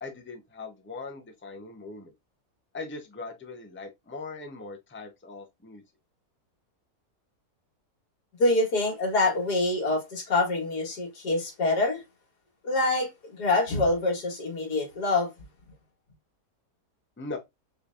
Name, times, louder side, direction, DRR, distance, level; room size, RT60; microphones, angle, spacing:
voice 1, 0.0-2.1 2.7-5.8 17.2-17.4, left 3 dB, 10° left, 0.8 m, -40 dB
voice 2, 8.4-12.0 12.6-15.3, left 2 dB, 85° left, 2.5 m, -25 dB
5.7 x 3.3 x 2.6 m
omnidirectional pair, 1.7 m